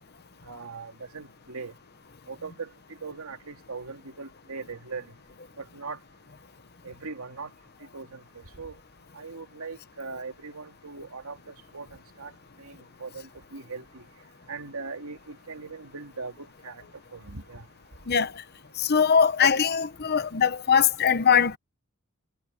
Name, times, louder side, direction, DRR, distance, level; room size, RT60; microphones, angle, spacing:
voice 1, 0.4-1.7 2.3-2.7 3.0-5.1 5.6-6.0 6.8-7.5 7.9-8.7 9.1-11.9 12.2-12.3 12.6-14.0 14.5-16.8 17.1-17.7, right 4 dB, 80° right, 2.7 m, -40 dB
voice 2, 18.1-18.4 18.8-21.6, left 7 dB, 50° left, 0.9 m, -21 dB
head